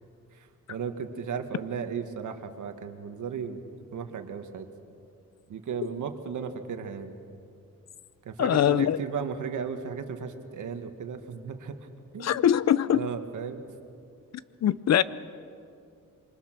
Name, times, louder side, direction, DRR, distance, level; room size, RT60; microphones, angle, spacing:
voice 1, 0.3-3.6 3.9-4.7 5.5-7.1 8.3-11.9 12.1-12.3 12.9-13.6, right 6 dB, 75° right, 1.9 m, -35 dB
voice 2, 8.4-9.0 12.2-13.1 14.6-15.0, left 10 dB, 60° left, 0.6 m, -22 dB
27.5 x 24.5 x 6.1 m
wide cardioid pair, 155°, 30 cm